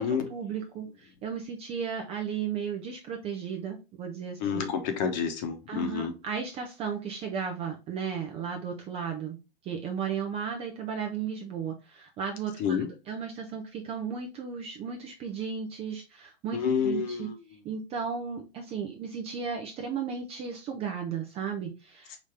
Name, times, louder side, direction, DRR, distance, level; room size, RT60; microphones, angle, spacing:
voice 1, 0.0-4.7 5.7-9.4 9.6-12.8 13.1-17.3 17.6-22.2, right 6 dB, 20° right, 3 dB, 0.5 m, -35 dB
voice 2, 4.4-6.1 12.6-12.9 16.5-17.4, left 7 dB, 40° left, 7 dB, 1.0 m, -29 dB
5.0 x 2.7 x 3.4 m, 0.28 s
hypercardioid pair, 135°, 34 cm